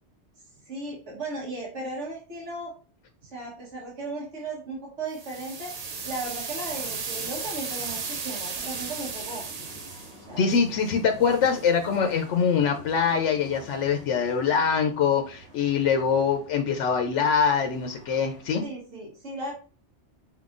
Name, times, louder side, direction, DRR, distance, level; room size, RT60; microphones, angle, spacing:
voice 1, 0.7-2.7 3.2-5.7 6.0-9.4 10.3-10.5 18.6-19.5, right 2 dB, 85° right, -3 dB, 1.6 m, -36 dB
sound 1, 5.1-10.2, right 5 dB, 45° right, 0.6 m, -34 dB
sound 2, 7.6-18.6, equal, 40° left, 1.6 m, -48 dB
voice 2, 10.4-18.6, left 6 dB, 90° left, 5 dB, 0.9 m, -24 dB
4.8 x 3.7 x 2.4 m, 0.37 s
omnidirectional pair, 1.2 m